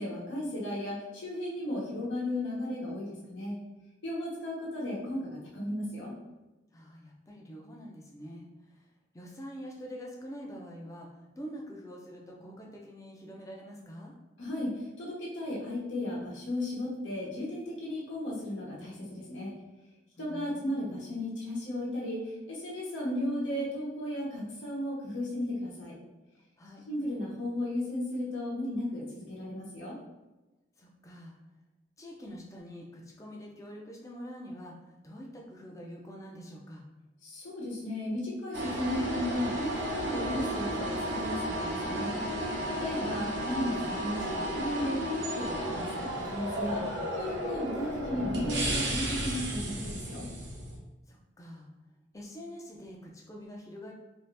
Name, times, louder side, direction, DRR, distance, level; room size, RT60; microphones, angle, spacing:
voice 1, 0.0-3.5 4.0-6.2 14.4-19.5 20.2-25.9 26.9-30.0 37.2-42.1 42.7-50.3, left 1 dB, 85° left, -5 dB, 1.0 m, -35 dB
voice 2, 6.7-8.8 9.1-14.1 20.2-20.9 26.6-26.8 30.8-31.4 32.0-36.8 42.8-43.2 51.1-51.7 52.1-53.9, equal, 15° left, -1 dB, 0.5 m, -45 dB
sound 1, 38.5-50.8, right 1 dB, 75° right, 0.7 m, -33 dB
2.7 x 2.4 x 3.2 m, 1.1 s
head